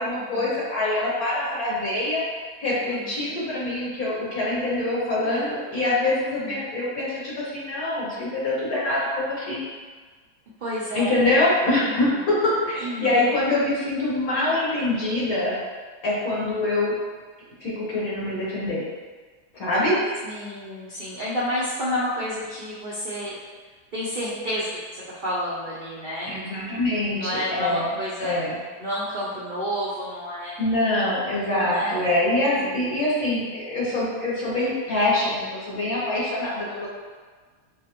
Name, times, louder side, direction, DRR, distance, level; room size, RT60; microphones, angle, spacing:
voice 1, 0.0-2.2 2.6-9.6 10.9-15.5 16.0-16.9 17.6-18.8 19.5-20.0 26.2-27.9 28.2-28.6 30.6-36.9, left 2 dB, 65° left, -6 dB, 1.4 m, -24 dB
voice 2, 2.9-3.3 5.2-5.5 6.4-6.7 10.6-11.4 11.8-12.3 12.8-13.3 20.2-23.3 23.9-26.4 27.1-28.4 28.8-30.7 31.6-32.0 32.4-32.8, equal, 75° right, -8 dB, 0.4 m, -30 dB
5.7 x 2.0 x 2.8 m, 1.5 s
omnidirectional pair, 1.7 m